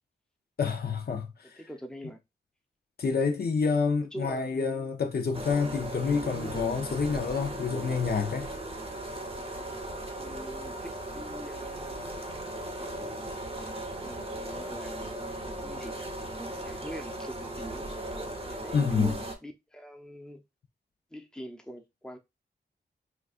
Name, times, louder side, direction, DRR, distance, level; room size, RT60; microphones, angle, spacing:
voice 1, 0.6-1.6 3.0-8.5 18.7-19.2, left 5 dB, 60° left, 0.6 m, -28 dB
voice 2, 1.4-2.2 4.0-4.9 10.2-12.0 12.8-13.3 14.0-15.2 15.6-16.1 16.6-17.9 18.5-18.8 19.4-20.4 21.1-22.2, equal, 5° left, 0.7 m, -44 dB
sound 1, 5.3-19.4, right 1 dB, 30° right, 0.8 m, -37 dB
4.0 x 2.3 x 2.4 m
cardioid pair, 50°, 18 cm